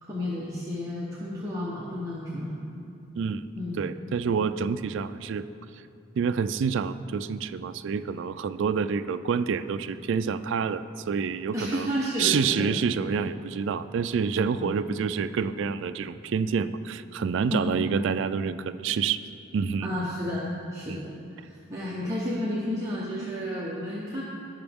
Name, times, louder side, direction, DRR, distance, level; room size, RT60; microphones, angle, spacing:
voice 1, 0.0-2.6 3.6-3.8 11.5-12.7 14.5-14.7 17.5-17.7 19.8-24.2, left 1 dB, 15° right, -7 dB, 0.9 m, -32 dB
voice 2, 3.2-3.5 3.8-5.5 6.2-11.9 12.2-19.2 19.5-19.9 20.9-21.0, right 6 dB, 65° right, 11 dB, 0.3 m, -28 dB
18.0 x 6.0 x 3.5 m, 2.5 s
head